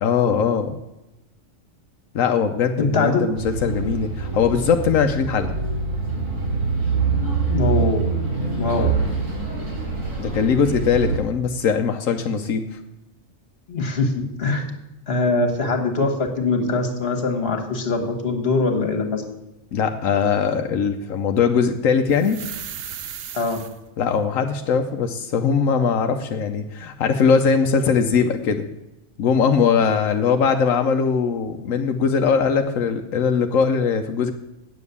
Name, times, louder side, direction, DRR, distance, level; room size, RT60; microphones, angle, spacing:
voice 1, 0.0-0.7 2.1-5.5 8.8-8.9 10.2-12.7 19.7-22.4 24.0-28.7 29.2-34.3, left 6 dB, 85° left, 5 dB, 1.1 m, -20 dB
voice 2, 2.8-3.2 7.5-8.0 8.6-8.9 13.7-14.7 15.1-19.2 23.3-23.6, left 3 dB, 50° left, 5 dB, 1.8 m, -22 dB
Bus, 3.4-11.2, right 4 dB, 75° right, 4.6 m, -25 dB
sound 1, 22.1-23.8 28.6-28.7, right 9 dB, 55° right, 0.8 m, -35 dB
8.5 x 7.3 x 8.2 m, 0.95 s
omnidirectional pair, 1.3 m